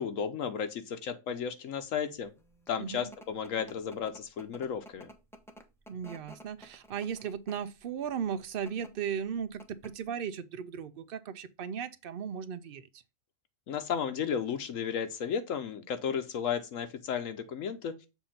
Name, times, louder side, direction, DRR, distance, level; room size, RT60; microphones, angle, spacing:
voice 1, 0.0-2.3 2.7-5.1 13.7-17.9, left 7 dB, 75° left, 1.1 m, -34 dB
sound 1, 2.4-7.8 8.5-8.9 9.3-9.4 9.6-10.1, equal, 5° left, 0.5 m, -51 dB
voice 2, 2.8-3.1 5.9-12.9, right 7 dB, 60° right, 0.6 m, -36 dB
7.2 x 2.7 x 5.6 m
omnidirectional pair, 1.4 m